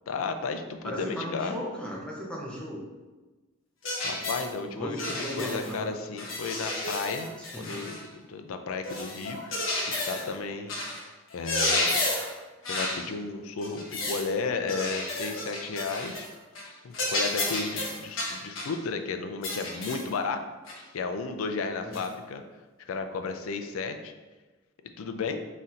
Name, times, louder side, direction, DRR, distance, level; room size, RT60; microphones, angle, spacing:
voice 1, 0.1-1.6 4.0-7.3 7.6-8.0 8.3-9.6 9.9-10.7 11.3-12.0 12.7-16.3 16.8-20.4 20.9-22.4 22.8-24.1 25.0-25.4, left 4 dB, 90° left, 7 dB, 0.4 m, -33 dB
voice 2, 0.8-2.8 4.6-5.9 7.4-7.8 21.8-22.0, equal, 5° left, -4 dB, 0.6 m, -36 dB
sound 1, 3.8-4.5 5.0-5.8 6.2-8.1 8.8-10.3 10.7-11.0 11.3-12.3 12.6-13.0 13.6-14.3 14.7-16.3 16.6-16.7 16.9-18.8 19.4-20.1 20.7-20.8 21.9-22.1, left 2 dB, 70° left, 0.9 m, -31 dB
4.1 x 4.0 x 2.5 m, 1.2 s
head